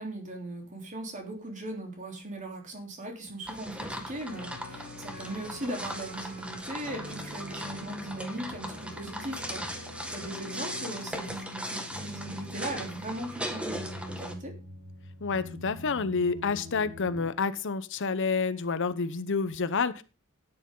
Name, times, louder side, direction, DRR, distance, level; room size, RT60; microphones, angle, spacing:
voice 1, 0.0-14.5, right 1 dB, 35° right, 2 dB, 3.5 m, -39 dB
sound 1, 3.4-14.3, equal, 5° right, 1.8 m, -39 dB
sound 2, 4.3-17.3, left 1 dB, 65° right, 4.9 m, -45 dB
voice 2, 15.2-20.0, left 4 dB, 60° left, 14 dB, 0.8 m, -29 dB
13.5 x 10.0 x 3.8 m, 0.31 s
head